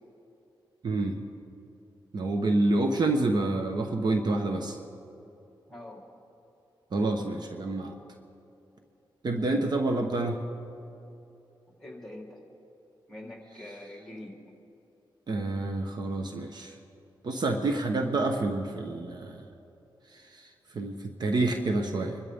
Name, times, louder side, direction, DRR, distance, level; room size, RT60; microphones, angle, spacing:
voice 1, 0.8-1.2 2.1-4.8 6.9-7.9 9.2-10.4 15.3-16.7 17.2-19.4 20.7-22.2, right 2 dB, 55° right, 4 dB, 1.1 m, -28 dB
voice 2, 5.7-6.0 11.8-12.4 13.1-14.4, left 1 dB, 5° left, -2 dB, 3.5 m, -44 dB
25.5 x 12.5 x 3.6 m, 2.8 s
wide cardioid pair, 100°, 9 cm